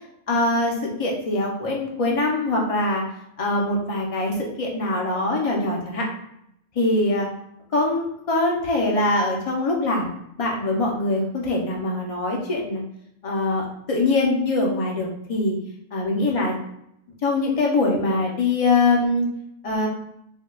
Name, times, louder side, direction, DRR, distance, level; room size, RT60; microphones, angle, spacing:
voice 1, 0.3-3.0 3.4-6.0 6.7-7.3 7.7-10.1 10.4-12.8 13.2-15.6 15.9-16.5 17.2-19.3 19.6-19.9, left 2 dB, 40° left, -1 dB, 0.5 m, -23 dB
4.5 x 2.2 x 2.3 m, 0.77 s
omnidirectional pair, 1.4 m